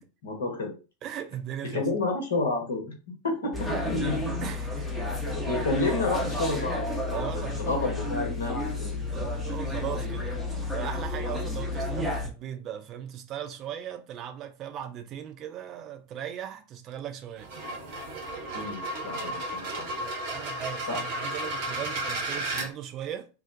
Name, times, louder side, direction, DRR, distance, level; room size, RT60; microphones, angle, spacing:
voice 1, 0.2-0.7 1.7-3.5 3.8-4.2 5.3-9.0 10.0-10.1 18.5-19.9 20.9-21.0, left 3 dB, 65° left, 0.9 m, -30 dB
voice 2, 1.0-1.8 3.9-5.0 7.1-7.6 9.1-17.5 19.3-19.4 20.0-23.3, right 10 dB, 35° right, 0.3 m, -38 dB
sound 1, 3.5-12.3, left 2 dB, ahead, 0.7 m, -31 dB
sound 2, 17.4-22.7, right 1 dB, 50° right, 0.9 m, -33 dB
2.4 x 2.1 x 2.5 m
figure-of-eight pair, 90°, 0 cm